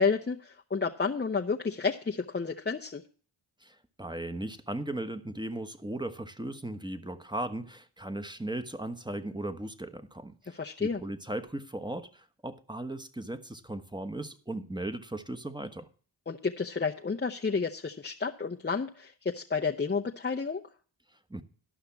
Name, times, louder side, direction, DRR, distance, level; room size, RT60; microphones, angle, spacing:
voice 1, 0.0-3.0 10.5-11.0 16.3-20.6, left 5 dB, 20° left, 0.8 m, -31 dB
voice 2, 3.6-15.9 21.3-21.4, right 1 dB, 10° right, 1.2 m, -37 dB
12.5 x 5.7 x 7.1 m
supercardioid pair, 45°, 48 cm